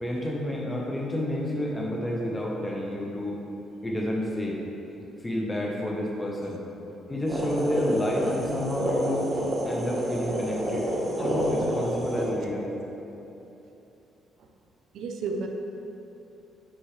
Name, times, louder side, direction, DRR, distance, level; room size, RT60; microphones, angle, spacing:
voice 1, 0.0-3.4 3.8-4.6 5.2-6.6 7.1-9.3 9.6-10.9 11.1-12.7, left 1 dB, 15° left, -2 dB, 1.0 m, -30 dB
sound 1, 7.3-12.3, equal, 30° right, 1.3 m, -28 dB
voice 2, 14.9-15.5, right 4 dB, 70° right, 3 dB, 0.7 m, -32 dB
8.4 x 5.4 x 3.3 m, 3.0 s
cardioid pair, 125°, 0 cm